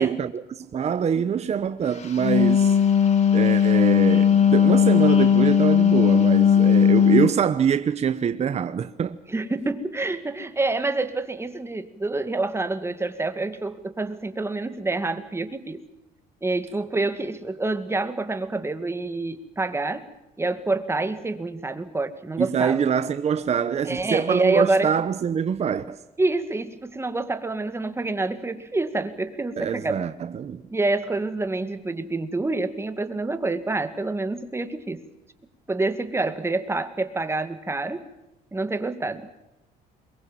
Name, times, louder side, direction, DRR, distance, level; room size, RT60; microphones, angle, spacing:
voice 1, 0.0-2.8 3.3-9.2 22.4-26.0 29.6-30.6, right 7 dB, 40° right, 1.0 m, -24 dB
Wind instrument woodwind instrument, 2.0-7.3, left 8 dB, 40° left, 3.1 m, -17 dB
voice 2, 9.3-15.8 16.4-20.0 20.4-22.9 23.8-24.9 26.2-30.0 30.7-35.0 35.7-38.0 38.5-39.3, right 2 dB, 15° right, 2.1 m, -27 dB
23.0 x 22.0 x 7.6 m
cardioid pair, 110°, 17 cm